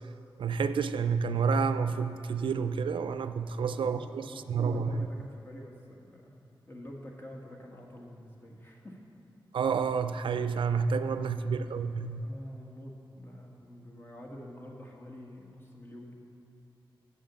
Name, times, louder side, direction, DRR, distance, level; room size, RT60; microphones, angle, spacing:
voice 1, 0.4-5.1 9.5-12.3, right 5 dB, 85° right, 11 dB, 0.4 m, -29 dB
voice 2, 3.5-6.3 6.7-9.0 11.1-11.8 12.2-16.1, equal, 25° left, -1 dB, 1.6 m, -47 dB
7.5 x 7.5 x 7.1 m, 2.8 s
cardioid pair, 65°, 8 cm